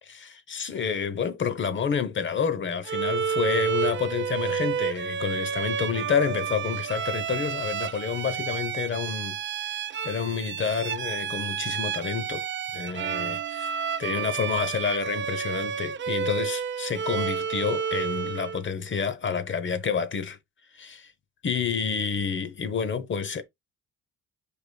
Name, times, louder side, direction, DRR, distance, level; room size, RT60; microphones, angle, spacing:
voice 1, 0.0-12.5 12.7-20.4 20.7-21.1 21.4-23.4, left 6 dB, 40° left, 0.8 m, -29 dB
Bowed string instrument, 2.8-18.6, right 7 dB, 40° right, 0.5 m, -30 dB
4.9 x 4.9 x 2.2 m
cardioid pair, 90°, 30 cm